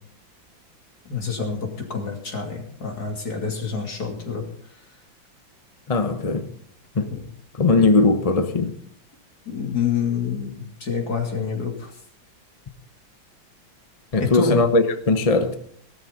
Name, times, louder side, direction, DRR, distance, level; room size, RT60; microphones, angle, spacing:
voice 1, 1.1-4.4 7.1-7.2 9.5-11.9 14.2-14.6, left 6 dB, 50° left, 3.2 m, -27 dB
voice 2, 5.9-6.5 6.9-7.1 7.5-8.7 14.1-15.6, left 3 dB, 35° left, 0.5 m, -19 dB
17.5 x 13.0 x 4.0 m
omnidirectional pair, 2.1 m